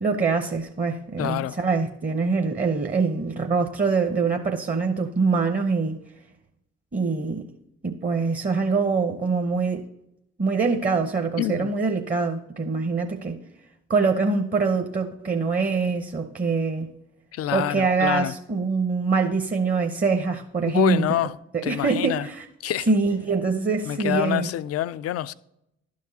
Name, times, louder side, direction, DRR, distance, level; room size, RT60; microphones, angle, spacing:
voice 1, 0.0-6.0 6.9-7.5 7.8-9.8 10.4-13.4 13.9-16.9 17.5-21.1 21.5-22.5 22.9-24.5, right 4 dB, 25° right, 0.9 m, -24 dB
voice 2, 1.2-1.6 11.4-11.7 17.3-18.3 20.7-21.3 21.6-22.3 22.6-22.9 23.9-25.3, left 13 dB, 50° left, 0.4 m, -26 dB
12.0 x 4.7 x 2.8 m
hypercardioid pair, 45°, 32 cm